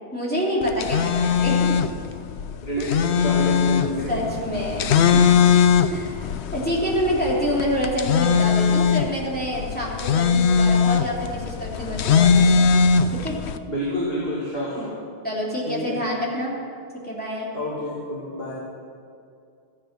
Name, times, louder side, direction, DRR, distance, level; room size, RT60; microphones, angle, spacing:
voice 1, 0.1-1.8 2.8-2.9 4.1-5.2 5.9-6.1 6.5-12.7 13.2-13.4 14.8-14.9 15.2-16.5 17.0-17.5, equal, 10° left, -6 dB, 3.1 m, -27 dB
sound 1, 0.6-13.6, left 6 dB, 75° left, 0.9 m, -20 dB
voice 2, 2.6-4.2 13.7-15.0 15.7-16.0 17.5-18.5, left 1 dB, 60° left, -7 dB, 2.8 m, -28 dB
14.5 x 10.0 x 6.1 m, 2.4 s
omnidirectional pair, 1.1 m